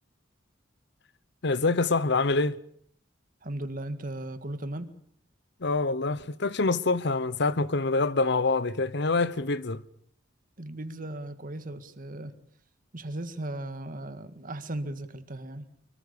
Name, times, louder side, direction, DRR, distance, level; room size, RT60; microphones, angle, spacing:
voice 1, 1.4-2.6 5.6-9.8, left 3 dB, 65° left, 1.0 m, -26 dB
voice 2, 3.4-4.9 10.6-12.3 12.9-15.7, right 1 dB, 45° right, 1.9 m, -37 dB
24.0 x 23.5 x 7.0 m
head